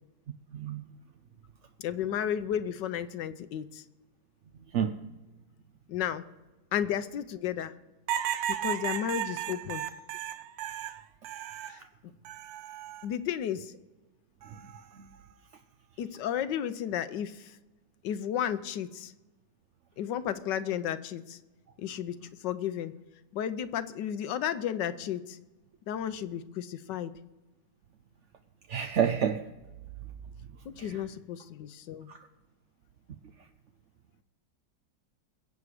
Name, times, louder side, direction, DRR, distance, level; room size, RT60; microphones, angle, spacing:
voice 1, 0.5-0.9 4.7-4.9 28.7-29.4 30.8-31.0 32.1-32.3, right 8 dB, 65° right, 6 dB, 0.7 m, -29 dB
voice 2, 1.8-3.8 5.9-6.2 6.7-7.7 8.6-9.8 11.7-11.8 13.0-13.7 16.0-17.6 18.0-19.1 20.0-21.4 21.8-22.2 22.4-22.9 23.3-25.4 25.9-27.1 30.6-32.1, left 9 dB, 80° left, 12 dB, 1.4 m, -33 dB
sound 1, 8.1-11.8 12.2-13.0 14.4-14.8, right 11 dB, 90° right, 1.4 m, -35 dB
22.0 x 8.3 x 4.9 m, 1.1 s
omnidirectional pair, 2.0 m